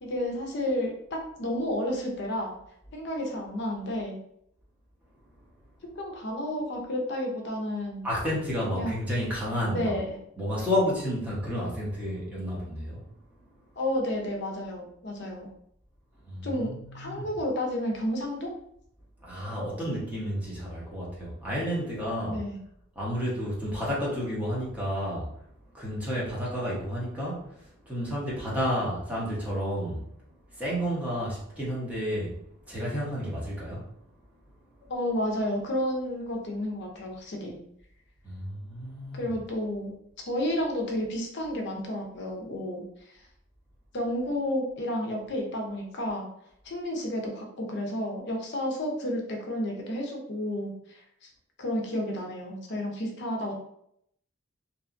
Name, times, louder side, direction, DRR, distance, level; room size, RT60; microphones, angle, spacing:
voice 1, 0.0-2.5 2.9-4.2 6.0-8.0 8.7-9.0 9.7-10.2 13.8-15.5 16.4-18.5 22.3-22.6 34.9-37.6 39.1-39.9 40.3-43.2 43.9-46.3 46.6-51.0 51.6-53.5, left 1 dB, 55° left, 1 dB, 0.6 m, -31 dB
voice 2, 8.0-9.9 10.4-13.0 16.3-17.2 19.2-22.4 22.9-25.3 25.7-30.0 30.6-32.3 32.7-33.9 38.2-39.3, equal, 5° right, -7 dB, 0.9 m, -31 dB
2.8 x 2.3 x 2.5 m, 0.72 s
head